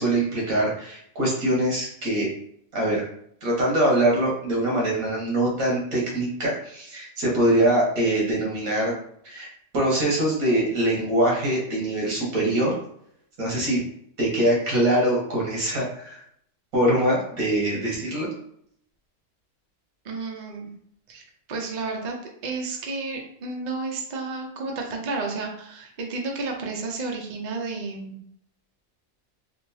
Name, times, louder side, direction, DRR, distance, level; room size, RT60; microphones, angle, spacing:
voice 1, 0.0-2.3 2.7-3.0 3.4-8.9 9.2-9.5 9.7-12.7 13.4-13.8 14.2-16.2 16.7-18.3, right 1 dB, 80° right, -3 dB, 1.6 m, -23 dB
voice 2, 20.0-20.7 21.1-21.2 21.5-22.2 22.4-28.2, right 3 dB, 50° right, 1 dB, 0.5 m, -31 dB
3.5 x 2.5 x 2.7 m, 0.69 s
omnidirectional pair, 1.4 m